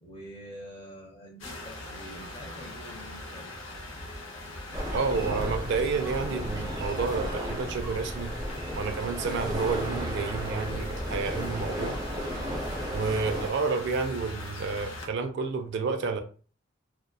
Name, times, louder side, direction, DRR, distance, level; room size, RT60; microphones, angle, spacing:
voice 1, 0.0-3.5, equal, 30° left, 0.6 m, -46 dB
sound 1, 1.4-15.1, left 1 dB, 85° left, 0.6 m, -41 dB
sound 2, 4.7-13.5, equal, 20° right, 0.6 m, -34 dB
voice 2, 4.9-8.3 8.8-12.0 12.9-16.2, right 4 dB, 60° right, 0.3 m, -30 dB
2.6 x 2.1 x 2.2 m
head